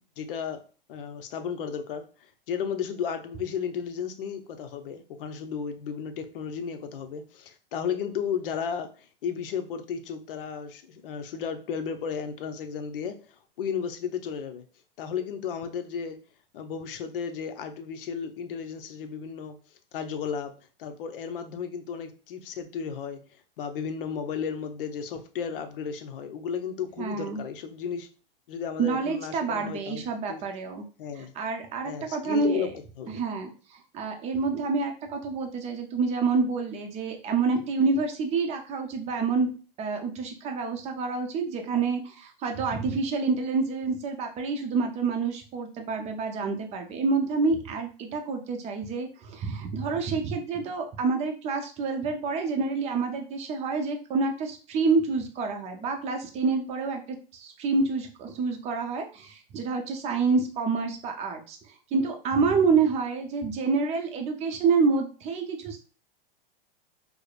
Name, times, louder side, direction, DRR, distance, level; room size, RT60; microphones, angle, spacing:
voice 1, 0.2-0.6 0.9-2.0 2.5-8.9 9.2-13.2 13.6-14.6 15.0-16.2 16.5-19.6 19.9-20.5 20.8-23.2 23.6-28.1 28.5-30.4 31.0-31.3 31.8-32.7 33.0-33.2, left 7 dB, 70° left, 8 dB, 0.7 m, -34 dB
voice 2, 27.0-27.4 28.8-30.8 31.2-32.7 33.1-39.5 39.8-61.6 61.9-65.8, right 4 dB, 25° right, 4 dB, 0.6 m, -28 dB
4.8 x 2.0 x 2.4 m, 0.37 s
hypercardioid pair, 135°, 29 cm